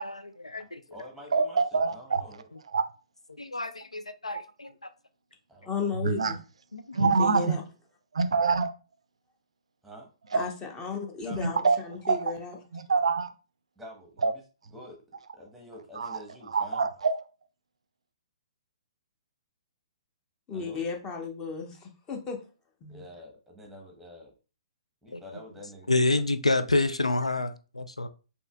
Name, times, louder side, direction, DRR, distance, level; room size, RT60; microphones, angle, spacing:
voice 1, 0.0-0.8 3.4-4.9 6.7-7.0 25.1-25.2 25.9-28.1, left 2 dB, 90° left, 0.4 m, -28 dB
voice 2, 0.6-1.6 1.9-2.4 5.5-5.9 9.8-10.1 11.2-11.4 13.8-14.3 14.7-15.0 15.4-16.9 20.5-20.8 22.9-24.3 25.0-26.2, left 1 dB, ahead, 1.1 m, -47 dB
voice 3, 1.3-2.9 6.0-6.3 6.9-7.6 8.1-8.7 10.3-10.4 11.3-11.8 12.0-12.3 12.7-13.3 14.2-14.3 15.9-16.2 16.5-17.2, right 4 dB, 70° right, 0.4 m, -25 dB
voice 4, 5.7-6.4 7.0-7.6 10.3-12.6 20.5-22.4 22.8-23.0, left 5 dB, 20° left, 0.9 m, -34 dB
5.3 x 2.8 x 2.3 m
figure-of-eight pair, 125°, 3 cm